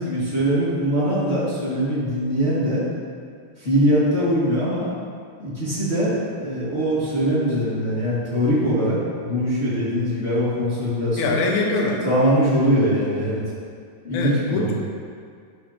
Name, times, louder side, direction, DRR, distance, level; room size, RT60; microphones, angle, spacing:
voice 1, 0.0-2.9 3.6-4.9 5.4-11.4 12.0-13.4 14.0-14.7, equal, 25° left, -11 dB, 1.4 m, -22 dB
voice 2, 11.2-12.0 14.1-14.7, left 3 dB, 70° left, -1 dB, 1.9 m, -23 dB
11.0 x 11.0 x 3.0 m, 2.1 s
omnidirectional pair, 5.1 m